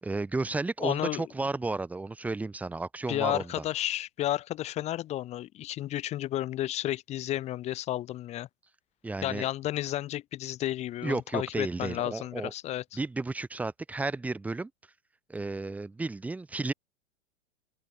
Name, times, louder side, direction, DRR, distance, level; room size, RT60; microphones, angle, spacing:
voice 1, 0.0-3.6 9.0-9.5 11.0-12.5 12.9-14.7 15.3-16.7, right 3 dB, 5° right, 3.5 m, -33 dB
voice 2, 0.8-1.2 3.1-8.5 9.2-13.0, left 14 dB, 15° left, 4.3 m, -32 dB
supercardioid pair, 180°, 39 cm